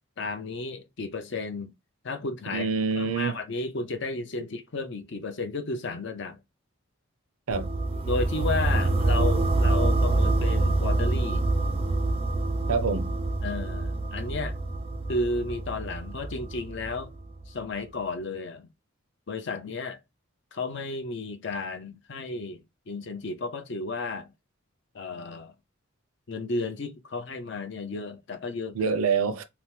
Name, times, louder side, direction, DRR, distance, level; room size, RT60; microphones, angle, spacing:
voice 1, 0.2-1.7 2.0-2.7 2.9-6.4 8.0-11.4 13.4-14.6 15.1-17.1 17.5-18.7 19.3-20.0 20.5-22.6 22.9-24.3 24.9-25.5 26.3-28.9, left 3 dB, 55° left, 0.5 m, -33 dB
voice 2, 2.5-3.4 7.5-7.7 12.7-13.1 28.7-29.4, right 5 dB, 85° right, 0.5 m, -26 dB
sound 1, 7.5-17.4, right 2 dB, 25° right, 0.3 m, -26 dB
2.8 x 2.1 x 3.2 m
head